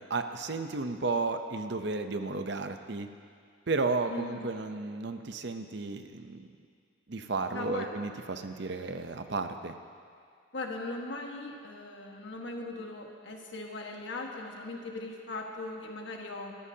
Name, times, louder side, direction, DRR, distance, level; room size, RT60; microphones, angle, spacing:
voice 1, 0.0-3.1 3.7-6.5 7.1-9.8, right 3 dB, 55° right, 7 dB, 0.7 m, -33 dB
voice 2, 4.1-4.6 7.5-7.9 10.5-16.6, left 2 dB, 60° left, 1 dB, 1.5 m, -39 dB
22.5 x 14.0 x 2.8 m, 2.2 s
head